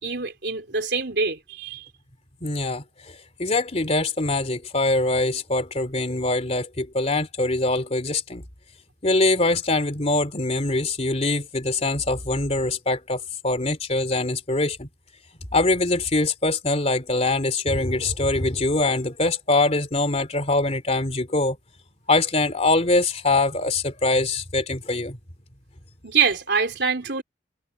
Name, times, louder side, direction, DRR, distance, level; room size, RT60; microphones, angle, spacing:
voice 1, 0.0-1.9 26.0-27.2, right 5 dB, 65° right, 4.1 m, -24 dB
voice 2, 2.4-8.4 9.0-14.9 15.5-21.6 22.1-25.2, left 2 dB, 35° left, 2.9 m, -23 dB
head